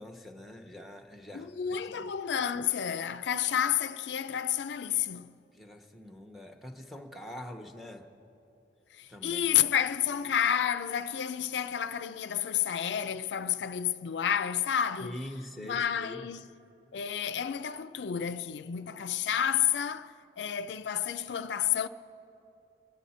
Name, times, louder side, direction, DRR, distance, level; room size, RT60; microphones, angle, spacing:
voice 1, 0.0-2.1 5.5-8.1 9.1-9.6 15.0-16.3, left 1 dB, ahead, 0.8 m, -44 dB
voice 2, 1.3-5.4 8.9-15.3 15.6-16.5 16.9-21.9, left 9 dB, 75° left, 0.4 m, -30 dB
26.0 x 10.5 x 4.3 m
head